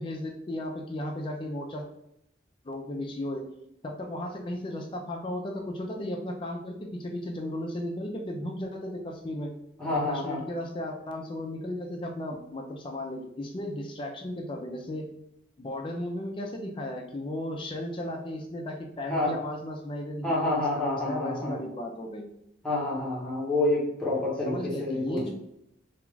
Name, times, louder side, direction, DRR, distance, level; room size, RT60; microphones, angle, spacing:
voice 1, 0.0-1.9 2.6-3.4 3.8-9.5 9.9-15.1 15.6-22.3 24.4-25.3, left 1 dB, 30° left, 2 dB, 0.4 m, -35 dB
voice 2, 9.8-10.4 19.1-19.3 20.2-21.6 22.6-25.3, left 2 dB, 5° left, -7 dB, 0.9 m, -28 dB
2.4 x 2.3 x 3.1 m, 0.79 s
head